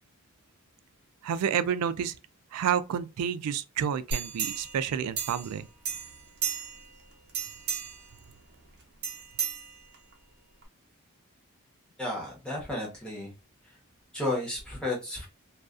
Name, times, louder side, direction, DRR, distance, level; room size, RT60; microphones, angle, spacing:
voice 1, 1.2-2.2 2.5-5.7, right 8 dB, 90° right, 0.3 m, -29 dB
sound 1, 4.1-5.6 5.8-6.9 7.3-8.1 9.0-10.1 10.6-10.7, right 6 dB, 50° right, 0.7 m, -34 dB
voice 2, 12.0-13.3 14.1-15.3, left 1 dB, 5° left, 0.9 m, -32 dB
2.3 x 2.3 x 2.4 m
head